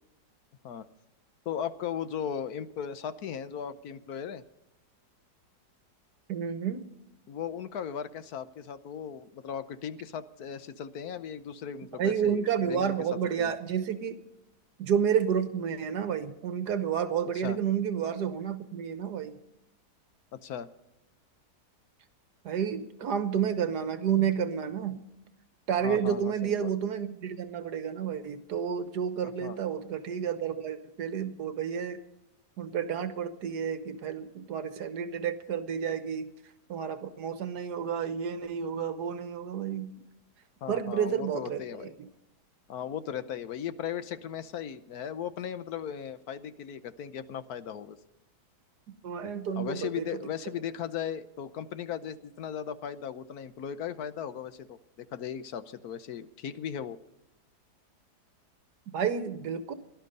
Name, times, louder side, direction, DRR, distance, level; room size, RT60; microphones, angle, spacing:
voice 1, 1.5-4.4 7.3-12.9 13.4-13.5 17.4-17.6 20.3-20.7 25.8-26.7 29.4-29.6 40.6-41.9 42.7-48.0 49.5-57.0, left 8 dB, 70° left, 13 dB, 1.2 m, -37 dB
voice 2, 6.3-6.8 11.9-14.1 14.8-19.4 22.4-25.0 25.7-32.0 32.6-36.3 36.7-39.9 40.7-41.9 49.0-50.1 58.9-59.7, right 8 dB, 75° right, 11 dB, 1.6 m, -30 dB
17.5 x 12.0 x 5.3 m, 0.88 s
omnidirectional pair, 1.8 m